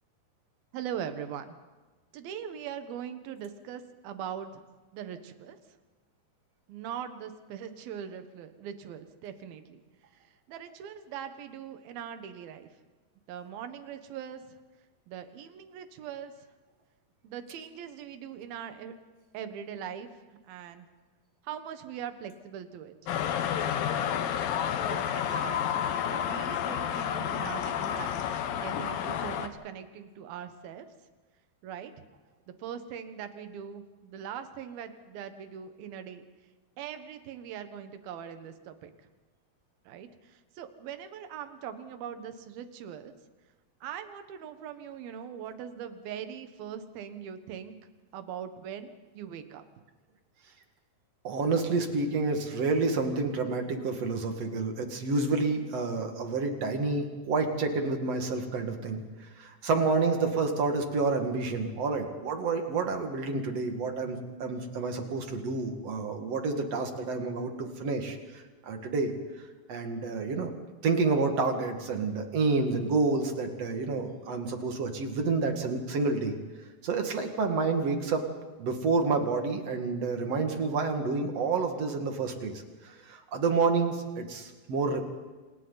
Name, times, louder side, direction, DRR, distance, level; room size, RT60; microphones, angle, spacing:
voice 1, 0.7-1.6 2.1-4.6 4.9-5.6 6.7-9.8 10.1-12.7 13.3-14.6 15.1-16.3 17.2-18.9 19.3-20.1 20.4-20.9 21.4-23.0 23.9-24.2 24.9-25.7 26.0-28.2 28.6-30.9 31.6-32.0 32.6-36.3 36.8-38.9 39.9-43.1 43.8-47.8 48.1-49.6, right 8 dB, 70° right, 8 dB, 3.0 m, -41 dB
sound 1, 23.1-29.5, left 9 dB, 70° left, 2.5 m, -30 dB
voice 2, 51.2-59.0 59.4-68.2 68.6-69.1 69.7-70.5 70.8-76.3 76.8-78.2 78.6-85.0, right 4 dB, 50° right, 4 dB, 2.4 m, -29 dB
28.5 x 27.0 x 4.0 m, 1.3 s
omnidirectional pair, 4.7 m